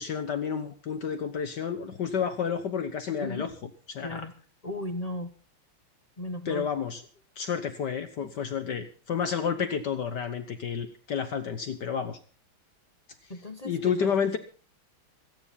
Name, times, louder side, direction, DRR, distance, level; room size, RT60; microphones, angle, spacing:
voice 1, 0.0-3.5 3.9-4.3 6.5-7.0 7.4-12.2 13.6-14.4, left 7 dB, 55° left, 9 dB, 1.6 m, -30 dB
voice 2, 3.2-3.5 4.0-4.4 4.6-5.3 6.2-6.7 13.3-14.3, left 1 dB, 35° left, 7 dB, 0.6 m, -36 dB
26.5 x 9.7 x 4.1 m, 0.38 s
omnidirectional pair, 2.4 m